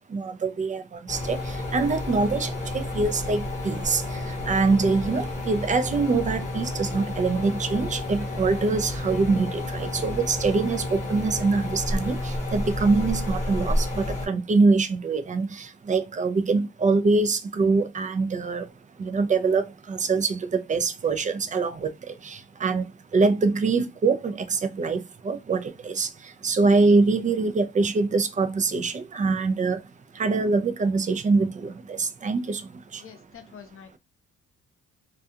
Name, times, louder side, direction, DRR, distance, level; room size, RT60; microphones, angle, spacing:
voice 1, 0.1-18.7 19.0-21.9 22.2-26.1 26.4-29.8 30.1-32.6 32.9-33.0, right 4 dB, 25° right, 0.4 m, -24 dB
sound 1, 1.1-14.3, left 1 dB, 25° left, 1.0 m, -30 dB
voice 2, 33.0-34.0, left 7 dB, 45° left, 0.7 m, -46 dB
2.4 x 2.3 x 2.7 m
cardioid pair, 90°, 30 cm